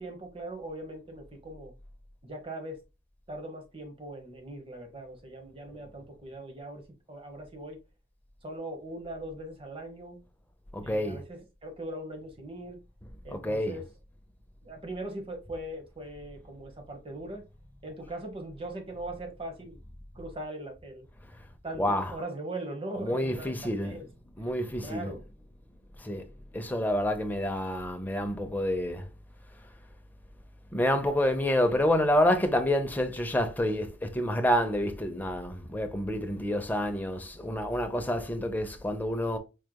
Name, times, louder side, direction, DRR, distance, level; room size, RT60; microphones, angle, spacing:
voice 1, 0.0-1.7 2.2-2.8 3.3-6.8 7.1-7.8 8.4-10.2 10.8-12.8 13.2-13.8 14.6-17.4 17.8-19.8 20.1-21.1 21.6-24.1 24.4-24.5 24.8-25.3, right 1 dB, 30° right, 1.1 m, -40 dB
voice 2, 10.7-11.2 13.3-13.8 21.7-22.2 23.0-24.0 24.4-25.1 26.0-29.1 30.7-39.4, left 1 dB, 10° left, 0.6 m, -28 dB
4.6 x 3.3 x 2.2 m
head